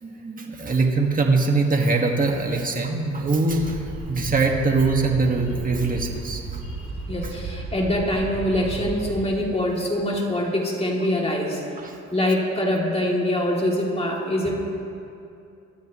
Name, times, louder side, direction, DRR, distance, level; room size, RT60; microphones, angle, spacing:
voice 1, 0.0-6.4 7.2-7.3 11.8-12.0, right 3 dB, 30° right, 1 dB, 1.7 m, -22 dB
sound 1, 3.5-9.2, right 3 dB, 70° right, 2.6 m, -34 dB
voice 2, 6.8-11.6 12.1-14.5, left 1 dB, 20° left, -2 dB, 2.8 m, -24 dB
23.0 x 13.0 x 3.1 m, 2.6 s
cardioid pair, 90°, 30 cm